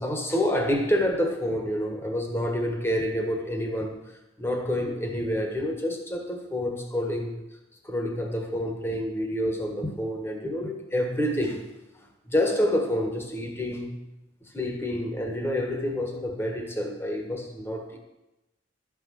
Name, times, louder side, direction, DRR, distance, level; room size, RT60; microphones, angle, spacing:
voice 1, 0.0-4.0 4.4-7.4 7.8-11.6 12.2-14.0 14.5-18.0, left 1 dB, 10° left, 3 dB, 1.6 m, -28 dB
12.5 x 6.2 x 7.6 m, 0.94 s
head